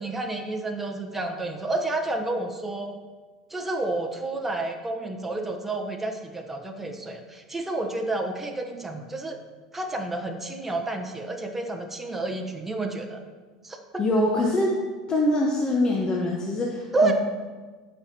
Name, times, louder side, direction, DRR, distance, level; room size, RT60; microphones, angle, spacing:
voice 1, 0.0-2.9 3.5-9.4 9.7-13.2 13.6-14.0 16.9-17.1, right 2 dB, 10° right, 2 dB, 1.0 m, -30 dB
voice 2, 14.0-14.8 15.1-17.1, left 1 dB, 25° left, -1 dB, 1.1 m, -24 dB
14.5 x 5.6 x 2.9 m, 1.4 s
hypercardioid pair, 85°, 3 cm